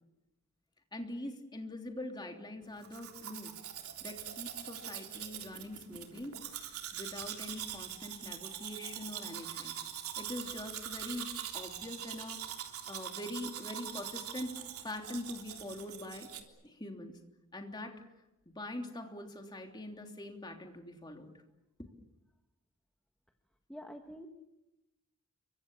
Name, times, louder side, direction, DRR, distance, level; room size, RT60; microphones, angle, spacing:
voice 1, 0.9-3.6 4.0-6.4 6.9-9.8 10.2-14.6 14.8-16.3 16.6-17.2 17.5-18.0 18.5-21.3 21.8-21.9, left 1 dB, 20° left, 3 dB, 3.2 m, -43 dB
Domestic sounds home sounds, 2.8-16.4, right 10 dB, 80° right, 3.5 m, -43 dB
voice 2, 23.7-24.3, equal, 5° left, 3 dB, 1.4 m, -46 dB
30.0 x 24.5 x 7.2 m, 0.97 s
head